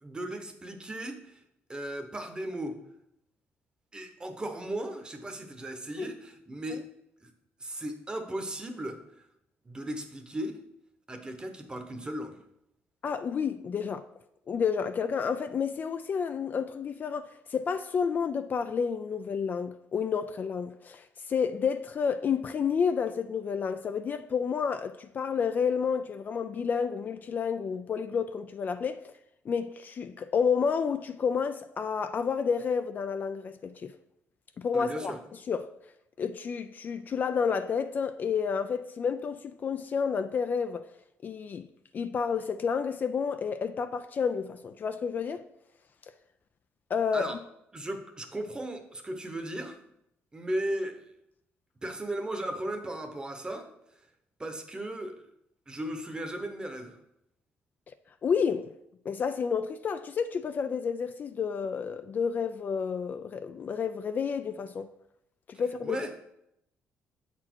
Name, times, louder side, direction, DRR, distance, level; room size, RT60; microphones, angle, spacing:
voice 1, 0.0-1.4 1.7-2.8 3.9-6.9 7.2-7.3 7.6-9.0 9.6-10.6 11.1-12.4 34.7-35.2 47.1-47.4 47.7-49.8 50.3-51.1 51.8-53.7 54.4-55.2 55.7-57.0 65.8-66.2, right 1 dB, 20° right, 0.9 m, -36 dB
voice 2, 13.0-14.0 14.5-29.0 29.5-33.9 34.6-35.1 35.5-35.7 36.2-40.9 41.2-41.7 41.9-45.4 46.9-47.3 58.2-58.7 59.1-64.9 65.5-66.1, left 6 dB, 40° left, 0.3 m, -30 dB
7.4 x 4.2 x 4.5 m
cardioid pair, 110°, 5 cm